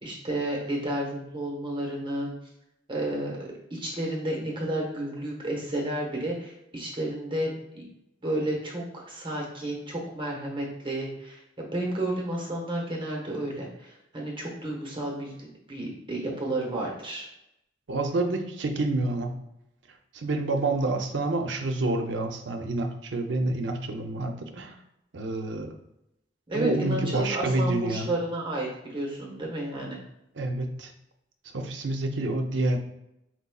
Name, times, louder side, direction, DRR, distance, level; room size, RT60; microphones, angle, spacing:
voice 1, 0.0-2.3 2.9-7.8 8.2-17.3 26.5-30.0, right 1 dB, 25° right, -1 dB, 1.1 m, -31 dB
voice 2, 17.9-19.3 20.1-24.7 25.1-25.8 26.5-28.1 30.4-30.9 31.5-32.8, right 2 dB, 75° right, 5 dB, 0.6 m, -28 dB
4.5 x 4.0 x 2.3 m, 0.83 s
head